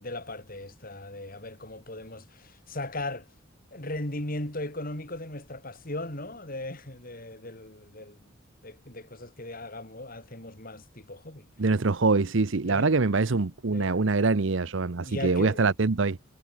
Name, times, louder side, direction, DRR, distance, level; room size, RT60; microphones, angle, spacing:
voice 1, 0.0-3.3 3.7-8.2 8.6-11.5 12.6-12.9 13.7-14.1 15.0-15.7, left 1 dB, 45° left, 4.2 m, -38 dB
voice 2, 11.6-16.2, right 3 dB, 65° right, 0.8 m, -24 dB
head